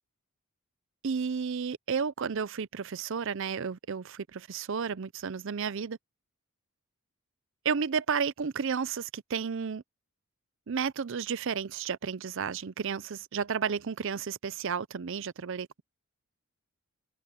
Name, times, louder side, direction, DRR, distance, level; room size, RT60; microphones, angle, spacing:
voice 1, 1.0-6.0 7.6-9.8 10.7-15.8, right 6 dB, 55° right, 0.5 m, -32 dB
head